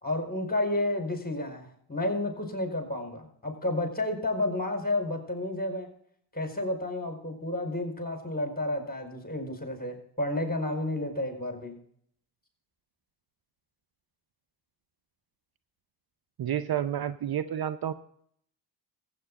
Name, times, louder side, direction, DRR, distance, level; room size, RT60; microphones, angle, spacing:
voice 1, 0.0-5.9 6.3-11.7, left 1 dB, 20° left, 3 dB, 4.9 m, -31 dB
voice 2, 16.4-17.9, right 10 dB, 50° right, 12 dB, 0.7 m, -30 dB
15.5 x 8.9 x 3.7 m, 0.64 s
supercardioid pair, 60°, 47 cm